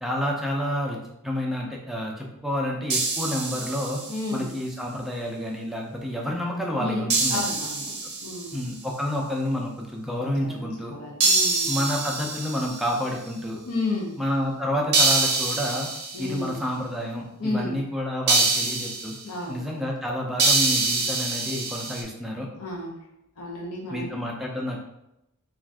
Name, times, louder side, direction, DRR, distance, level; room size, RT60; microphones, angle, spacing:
voice 1, 0.0-4.0 4.3-7.4 8.5-11.0 11.7-13.6 14.2-15.9 16.2-19.1 19.5-22.5 23.9-24.8, equal, ahead, -1 dB, 0.4 m, -29 dB
sound 1, 2.9-4.3 7.1-8.7 11.2-13.1 14.9-16.4 18.3-19.2 20.4-22.0, right 3 dB, 50° right, 0.6 m, -25 dB
voice 2, 4.1-4.5 6.8-8.6 10.4-11.8 13.7-14.2 16.1-16.6 17.4-17.8 19.2-19.7 22.6-23.0 23.4-24.1, left 2 dB, 70° left, -3 dB, 0.6 m, -32 dB
2.5 x 2.4 x 3.4 m, 0.84 s
head